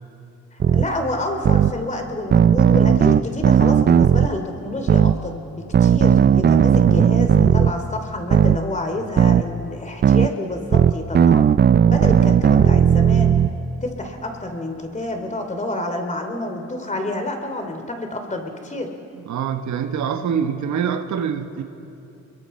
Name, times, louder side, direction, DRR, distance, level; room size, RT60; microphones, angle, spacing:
voice 1, 0.5-11.5 11.8-13.4 13.8-18.9, left 1 dB, 25° left, 2.9 m, -28 dB
sound 1, 0.6-0.8 1.4-1.7 2.3-4.3 4.9-5.1 5.7-7.7 8.3-8.6 9.2-9.4 10.0-10.3 10.7-13.5, right 8 dB, 35° right, 0.5 m, -15 dB
voice 2, 19.3-21.6, right 7 dB, 70° right, 1.2 m, -24 dB
29.5 x 22.5 x 4.3 m
cardioid pair, 90°, 30 cm